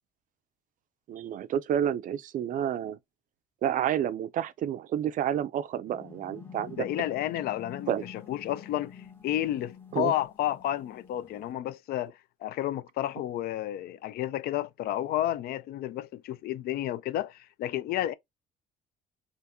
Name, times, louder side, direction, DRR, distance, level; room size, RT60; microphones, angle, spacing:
voice 1, 1.1-3.0 3.6-6.9 7.9-8.0 9.9-10.1, right 10 dB, 50° right, 0.4 m, -29 dB
sound 1, 5.9-11.5, left 6 dB, 15° left, 0.7 m, -48 dB
voice 2, 6.7-9.0 9.2-18.1, left 12 dB, 65° left, 0.4 m, -31 dB
2.8 x 2.5 x 3.4 m
cardioid pair, 110°, 17 cm